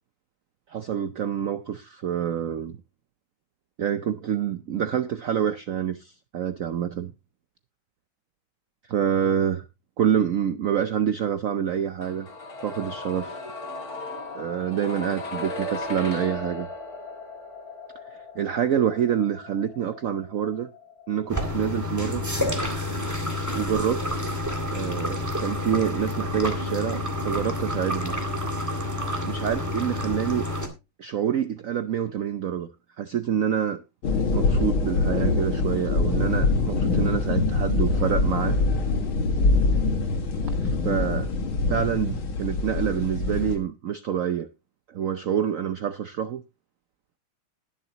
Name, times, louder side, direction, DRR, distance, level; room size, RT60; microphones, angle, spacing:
voice 1, 0.7-2.8 3.8-7.1 8.9-9.7 10.0-12.3 12.6-13.4 14.3-16.7 18.1-20.7 21.1-22.2 23.5-24.1 24.7-28.1 29.3-30.5 31.0-32.7 33.0-33.8 34.3-38.6 40.6-41.3 41.7-44.5 44.9-46.4, right 9 dB, 85° right, 11 dB, 0.7 m, -27 dB
sound 1, 12.0-23.8 24.1-24.2, left 2 dB, 45° left, 3.1 m, -37 dB
sound 2, 21.3-30.7, left 1 dB, 10° right, 1.9 m, -29 dB
sound 3, 34.0-43.6, left 3 dB, 75° left, 2.7 m, -24 dB
19.5 x 7.1 x 2.9 m, 0.26 s
omnidirectional pair, 2.3 m